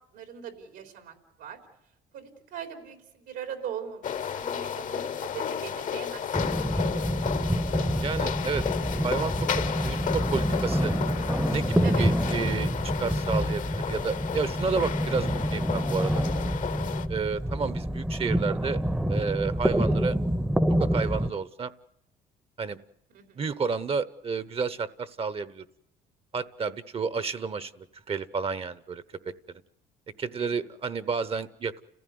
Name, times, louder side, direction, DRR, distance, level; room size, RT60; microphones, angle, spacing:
voice 1, 0.1-1.6 2.1-7.0 11.8-12.1 23.1-23.4 26.6-26.7 30.4-30.5, right 8 dB, 85° right, 5 dB, 3.7 m, -41 dB
sound 1, 4.0-17.1, left 8 dB, 50° left, 1.0 m, -33 dB
sound 2, 6.3-21.3, equal, 5° right, 0.8 m, -27 dB
voice 2, 8.0-8.6 9.0-9.3 9.8-10.9 11.5-12.7 13.0-16.2 17.1-18.8 19.1-20.2 20.8-21.7 22.6-22.8 23.4-25.6 26.3-29.0 30.2-31.8, right 5 dB, 35° right, 16 dB, 0.9 m, -31 dB
30.0 x 15.0 x 9.5 m, 0.79 s
cardioid pair, 110°, 17 cm